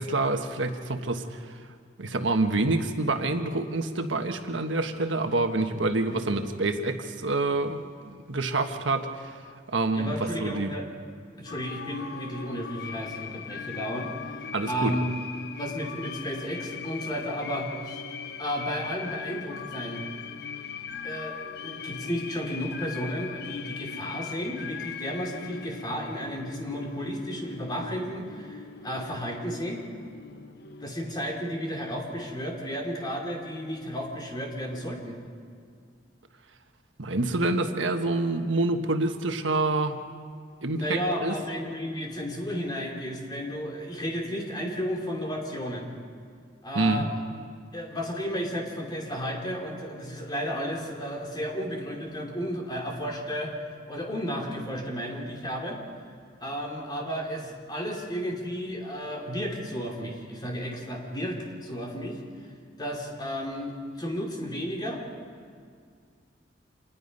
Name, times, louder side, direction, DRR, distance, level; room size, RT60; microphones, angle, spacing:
voice 1, 0.0-1.5 2.0-9.4 9.7-10.7 14.5-15.0 37.0-39.9 40.6-41.3 46.7-47.1, right 2 dB, 85° right, 6 dB, 1.3 m, -27 dB
voice 2, 9.9-10.9 11.4-15.1 15.6-18.0 18.4-20.1 21.0-29.8 30.8-35.2 40.8-45.9 46.6-47.2 47.7-53.5 53.9-55.8 56.4-62.2 62.8-65.0, equal, 20° left, 0 dB, 2.9 m, -33 dB
sound 1, 11.5-30.9, left 7 dB, 60° left, 0.9 m, -40 dB
26.5 x 20.5 x 5.5 m, 2.1 s
head